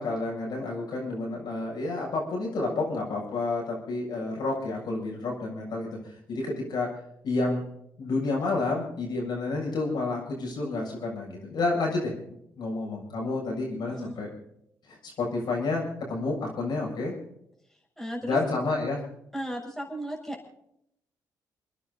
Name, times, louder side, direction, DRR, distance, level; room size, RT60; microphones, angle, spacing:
voice 1, 0.0-6.9 7.2-7.6 8.0-14.3 14.9-17.2 18.2-19.0, left 3 dB, 65° left, -2 dB, 7.4 m, -30 dB
voice 2, 18.0-18.4 19.3-20.5, right 1 dB, 5° left, -1 dB, 7.2 m, -35 dB
29.5 x 10.0 x 4.3 m, 0.74 s
supercardioid pair, 65°, 8 cm